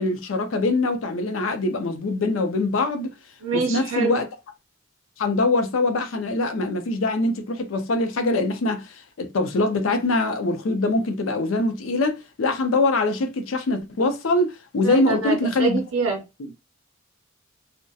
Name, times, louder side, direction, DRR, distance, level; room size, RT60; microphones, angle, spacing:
voice 1, 0.0-3.1 3.5-4.3 5.2-15.8 16.4-16.5, left 2 dB, 80° left, 0.5 m, -23 dB
voice 2, 3.4-4.2 14.8-16.2, right 4 dB, 80° right, 0.5 m, -25 dB
2.7 x 2.1 x 2.3 m
head